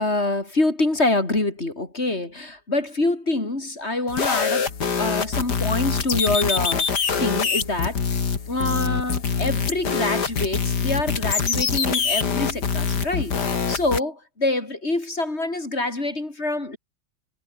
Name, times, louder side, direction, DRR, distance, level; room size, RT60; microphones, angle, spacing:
voice 1, 0.0-4.7 5.0-16.8, left 2 dB, 35° left, 4.6 m, -26 dB
sound 1, 4.1-14.0, left 5 dB, 60° left, 2.9 m, -24 dB
omnidirectional pair, 2.1 m